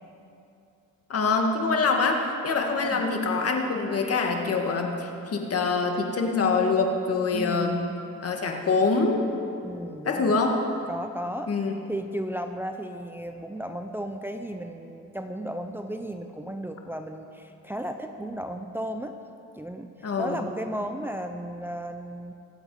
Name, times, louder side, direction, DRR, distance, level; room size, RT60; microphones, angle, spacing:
voice 1, 1.1-7.8 8.2-9.2 10.1-10.6 11.5-11.8 20.0-20.4, left 4 dB, 50° left, 2 dB, 2.0 m, -25 dB
voice 2, 7.3-8.0 9.6-10.4 10.9-11.5 11.9-19.1 19.6-22.3, right 1 dB, 5° right, 5 dB, 0.7 m, -34 dB
23.0 x 8.6 x 5.0 m, 2.6 s
cardioid pair, 90°, 30 cm